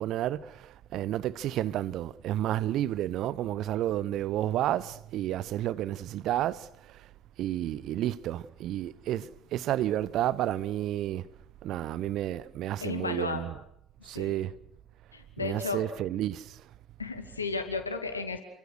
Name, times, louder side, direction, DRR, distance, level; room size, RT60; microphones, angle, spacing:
voice 1, 0.0-7.1 7.4-11.3 11.6-13.5 14.0-14.5 15.4-16.6, right 13 dB, 55° right, 0.9 m, -31 dB
voice 2, 12.8-13.5 14.1-14.4 15.1-15.8 17.0-18.4, left 4 dB, 85° left, 2.5 m, -33 dB
28.5 x 23.0 x 6.3 m
figure-of-eight pair, 55°, 0 cm